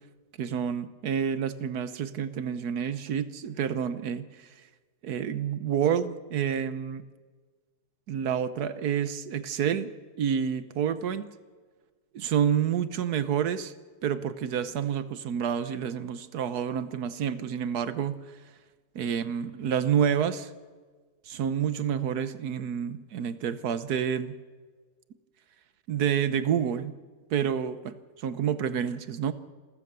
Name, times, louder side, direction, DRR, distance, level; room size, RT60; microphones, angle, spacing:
voice 1, 0.4-4.3 5.0-7.0 8.1-9.9 10.2-11.3 12.1-13.7 14.0-18.2 18.9-20.5 21.3-24.4 25.9-26.9 27.3-29.3, right 8 dB, 60° right, 13 dB, 1.2 m, -28 dB
27.5 x 14.5 x 6.8 m, 1.4 s
omnidirectional pair, 2.4 m